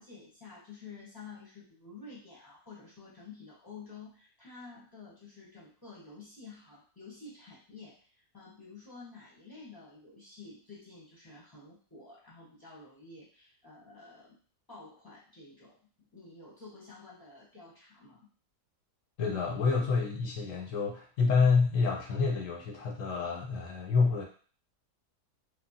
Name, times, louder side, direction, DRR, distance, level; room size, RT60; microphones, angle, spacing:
voice 1, 0.0-14.4 14.7-18.3, left 4 dB, 20° left, -8 dB, 0.8 m, -50 dB
voice 2, 19.2-24.2, left 4 dB, 65° left, 0 dB, 0.9 m, -28 dB
3.1 x 2.3 x 2.6 m, 0.42 s
omnidirectional pair, 1.7 m